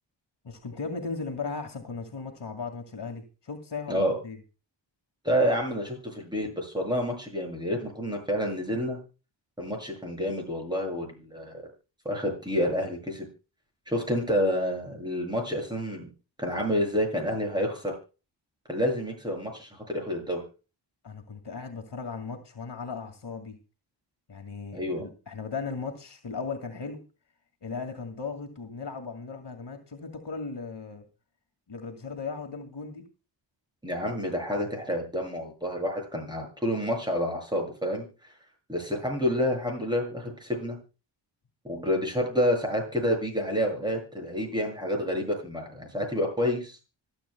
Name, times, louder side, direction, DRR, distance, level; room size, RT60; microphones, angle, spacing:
voice 1, 0.4-4.4 21.0-23.6 24.3-27.0 27.6-31.0 31.7-33.0, left 4 dB, 60° left, 4 dB, 2.2 m, -37 dB
voice 2, 5.2-9.0 9.6-11.6 12.0-13.3 13.9-16.1 16.4-17.9 18.7-20.4 24.7-25.0 33.8-38.0 38.7-40.8 41.6-46.8, equal, 10° right, 1 dB, 7.5 m, -29 dB
25.5 x 8.6 x 2.2 m, 0.33 s
wide cardioid pair, 110°, 46 cm